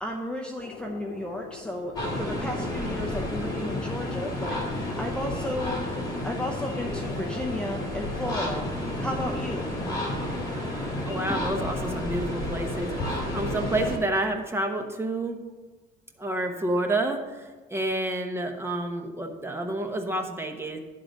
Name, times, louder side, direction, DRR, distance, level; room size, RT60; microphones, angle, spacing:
voice 1, 0.0-5.8 6.2-8.7 9.0-9.7 11.3-11.4, left 1 dB, 5° left, 1 dB, 0.7 m, -33 dB
sound 1, 0.6-8.7, left 8 dB, 85° left, 0.7 m, -41 dB
sound 2, 2.0-14.0, left 1 dB, 25° left, 2.6 m, -31 dB
voice 2, 11.0-15.4 16.2-20.8, right 1 dB, 15° right, 4 dB, 1.0 m, -29 dB
11.0 x 3.9 x 6.4 m, 1.3 s
cardioid pair, 110°, 17 cm